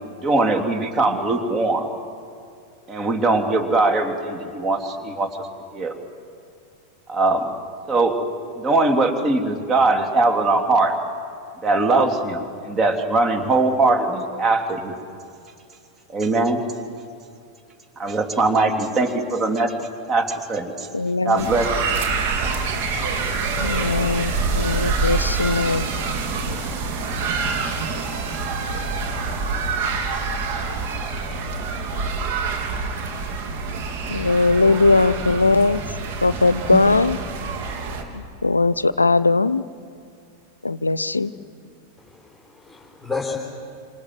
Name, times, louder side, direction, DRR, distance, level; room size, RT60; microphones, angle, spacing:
voice 1, 0.2-1.9 2.9-5.5 5.7-6.0 7.1-7.5 7.9-8.2 8.6-11.0 11.6-14.9 16.1-16.6 18.0-20.9 21.2-21.7, right 3 dB, 25° right, 5 dB, 3.3 m, -21 dB
voice 2, 20.9-21.5 23.6-25.9 34.1-35.8 36.2-37.2 38.1-39.6 40.6-41.3, left 3 dB, 80° left, 17 dB, 0.6 m, -19 dB
sound 1, 21.4-38.0, right 4 dB, 50° right, 3.4 m, -26 dB
voice 3, 42.0-43.4, left 4 dB, ahead, -3 dB, 4.1 m, -31 dB
27.0 x 27.0 x 8.0 m, 2.4 s
figure-of-eight pair, 90°, 0 cm